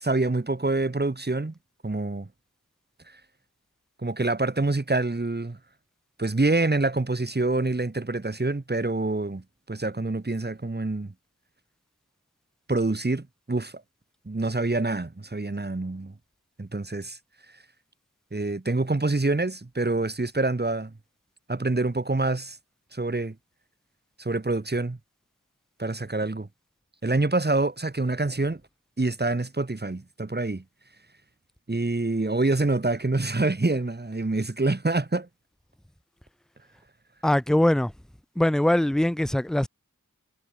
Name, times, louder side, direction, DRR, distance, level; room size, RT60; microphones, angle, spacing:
voice 1, 0.0-1.5 1.8-2.3 4.0-5.6 6.2-9.4 9.7-11.1 12.7-13.7 14.2-16.1 16.6-17.2 18.3-20.9 21.5-22.6 22.9-23.3 24.2-25.0 25.8-26.5 27.0-28.6 29.0-30.6 31.7-35.3, right 2 dB, 30° right, 1.6 m, -26 dB
voice 2, 37.2-37.9 38.4-39.7, left 1 dB, ahead, 0.4 m, -22 dB
wide cardioid pair, 40°, 32 cm